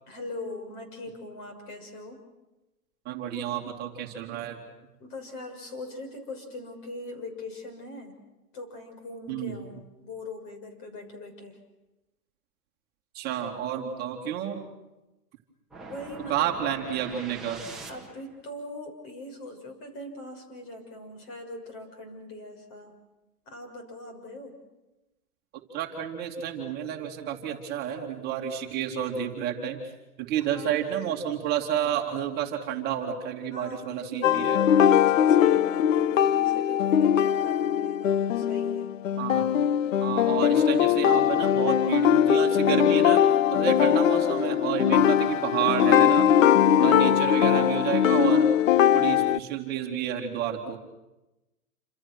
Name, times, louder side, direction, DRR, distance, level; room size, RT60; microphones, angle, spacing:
voice 1, 0.1-2.2 5.0-8.2 8.5-11.6 15.8-16.5 17.9-23.0 23.5-24.6 30.4-30.9 33.5-38.9 43.5-44.0 46.6-47.0, left 2 dB, 30° left, 4 dB, 6.4 m, -41 dB
voice 2, 3.0-4.6 9.3-9.5 13.1-14.6 16.3-17.6 25.7-29.8 30.2-34.6 39.2-39.5 40.0-43.2 43.5-46.4 46.8-48.5 48.9-50.8, right 9 dB, 20° right, 1 dB, 2.8 m, -30 dB
sound 1, 15.7-18.4, right 3 dB, ahead, 2.0 m, -43 dB
sound 2, 34.2-49.4, left 9 dB, 55° left, 0.9 m, -21 dB
29.0 x 27.0 x 6.3 m, 0.99 s
hypercardioid pair, 150°, 46 cm